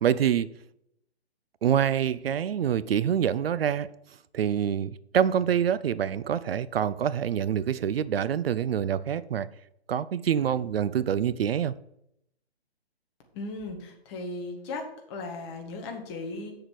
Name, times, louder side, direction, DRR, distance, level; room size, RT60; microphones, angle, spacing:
voice 1, 0.0-0.5 1.6-3.9 4.3-9.5 9.9-11.7, right 9 dB, 65° right, 0.5 m, -26 dB
voice 2, 13.3-16.5, left 2 dB, 25° left, 1.6 m, -37 dB
7.7 x 6.8 x 4.7 m
hypercardioid pair, 150°, 33 cm